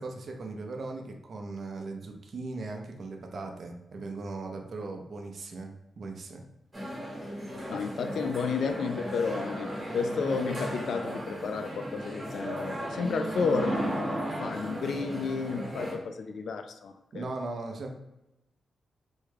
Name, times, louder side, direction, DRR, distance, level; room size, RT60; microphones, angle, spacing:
voice 1, 0.0-6.4 17.1-18.0, right 3 dB, 55° right, 3 dB, 0.5 m, -38 dB
sound 1, 6.7-15.9, equal, 25° right, 1.0 m, -35 dB
voice 2, 7.7-17.2, left 5 dB, 75° left, 7 dB, 0.3 m, -32 dB
3.5 x 2.2 x 3.2 m, 0.94 s
wide cardioid pair, 125°, 0 cm